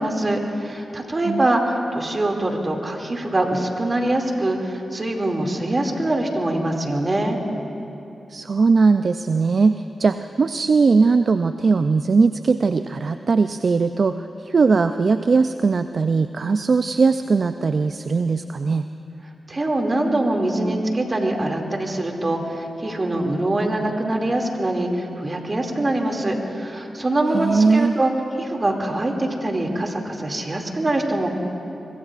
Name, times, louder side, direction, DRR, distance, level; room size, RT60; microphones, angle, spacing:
voice 1, 0.0-7.4 19.5-28.1 28.4-31.3, right 1 dB, 40° right, 1 dB, 2.4 m, -23 dB
voice 2, 8.3-18.8 27.3-27.9, right 4 dB, 60° right, 10 dB, 0.4 m, -19 dB
25.0 x 22.0 x 2.5 m, 2.8 s
supercardioid pair, 45°, 0 cm